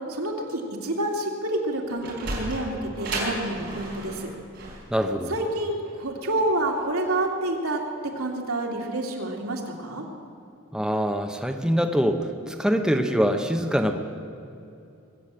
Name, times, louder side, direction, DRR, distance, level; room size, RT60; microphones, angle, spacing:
voice 1, 0.1-4.3 5.3-10.0, right 1 dB, 85° right, 0 dB, 2.5 m, -28 dB
Sliding door, 1.7-6.9, right 2 dB, 55° right, 4.6 m, -34 dB
voice 2, 4.9-5.3 10.7-14.0, equal, 5° right, 4 dB, 0.8 m, -24 dB
22.5 x 8.4 x 7.5 m, 2.7 s
head